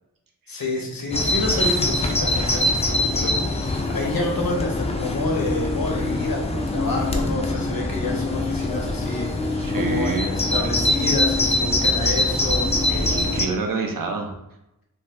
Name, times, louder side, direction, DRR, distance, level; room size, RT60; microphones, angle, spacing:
voice 1, 0.5-12.7, left 2 dB, 75° left, 0 dB, 0.8 m, -29 dB
Bird vocalization bird call bird song, 1.1-13.5, left 2 dB, 20° left, 0.3 m, -23 dB
voice 2, 9.6-10.3 12.9-14.4, right 3 dB, 65° right, 3 dB, 0.6 m, -27 dB
2.6 x 2.3 x 3.3 m, 0.85 s
wide cardioid pair, 90°, 35 cm